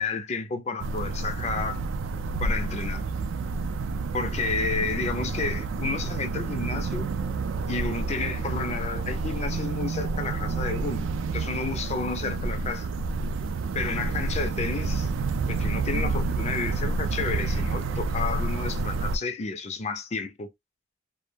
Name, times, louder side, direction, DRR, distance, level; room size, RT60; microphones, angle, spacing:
voice 1, 0.0-1.8 2.4-3.0 4.1-7.1 7.7-12.9 13.7-15.1 15.5-20.5, left 4 dB, 35° left, 0.4 m, -31 dB
sound 1, 0.8-19.2, right 3 dB, 65° right, 0.3 m, -29 dB
2.2 x 2.0 x 3.3 m
head